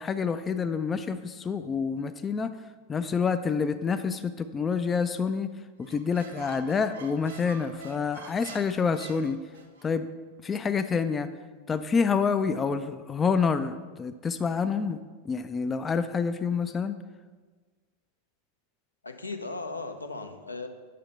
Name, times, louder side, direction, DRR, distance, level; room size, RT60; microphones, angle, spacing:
voice 1, 0.0-2.5 2.9-5.5 5.8-9.4 9.8-10.1 10.4-11.3 11.7-15.0 15.2-17.0, left 5 dB, 20° left, 11 dB, 0.3 m, -27 dB
Squeak, 5.8-9.9, right 4 dB, 65° right, 0.8 m, -47 dB
voice 2, 19.0-20.7, left 3 dB, 80° left, 6 dB, 0.6 m, -37 dB
5.6 x 5.0 x 6.6 m, 1.4 s
figure-of-eight pair, 90°, 0 cm